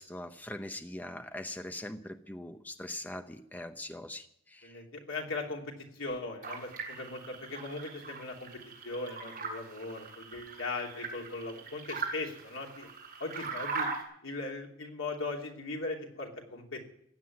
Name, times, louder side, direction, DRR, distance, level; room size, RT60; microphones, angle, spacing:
voice 1, 0.0-4.8, left 1 dB, 10° left, 8 dB, 0.7 m, -42 dB
voice 2, 4.6-12.9 13.2-13.9 14.2-16.8, left 3 dB, 90° left, 0 dB, 3.1 m, -39 dB
sound 1, 6.4-14.0, right 4 dB, 40° right, 6.8 m, -40 dB
15.5 x 9.2 x 9.7 m, 0.69 s
head